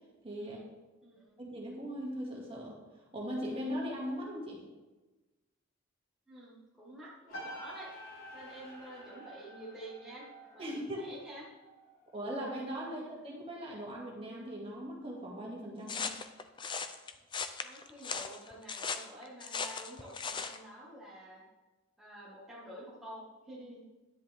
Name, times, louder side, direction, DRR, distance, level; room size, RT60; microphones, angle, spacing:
voice 1, 0.2-0.6 1.4-2.8 3.1-4.6 10.6-11.0 12.1-16.1, equal, 25° right, -3 dB, 2.2 m, -39 dB
voice 2, 1.0-1.4 6.3-7.9 8.3-10.3 10.5-11.5 12.8-13.1 17.6-21.4 22.0-23.8, right 1 dB, ahead, -8 dB, 1.8 m, -49 dB
sound 1, 7.3-11.9 12.2-12.6, right 1 dB, 65° left, 1.9 m, -50 dB
sound 2, 7.3-12.9, left 2 dB, 45° left, 3.8 m, -56 dB
sound 3, 15.9-20.6, left 5 dB, 20° left, 0.4 m, -38 dB
10.5 x 10.0 x 3.5 m, 1.2 s
head